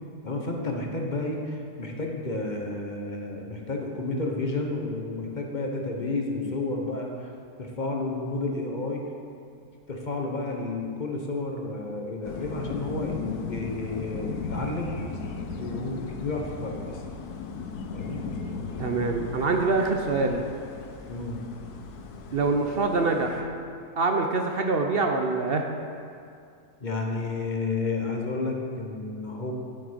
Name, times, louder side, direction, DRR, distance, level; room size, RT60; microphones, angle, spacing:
voice 1, 0.2-7.3 7.6-9.0 9.9-15.0 15.6-17.0 17.9-18.2 21.1-21.4 26.8-29.5, left 2 dB, 35° left, 1 dB, 1.1 m, -31 dB
sound 1, 12.2-23.4, left 5 dB, 85° left, 1.3 m, -37 dB
voice 2, 18.8-20.4 22.3-23.5 24.0-25.6, right 3 dB, 55° right, 4 dB, 0.7 m, -25 dB
10.0 x 7.9 x 5.1 m, 2.4 s
omnidirectional pair, 1.6 m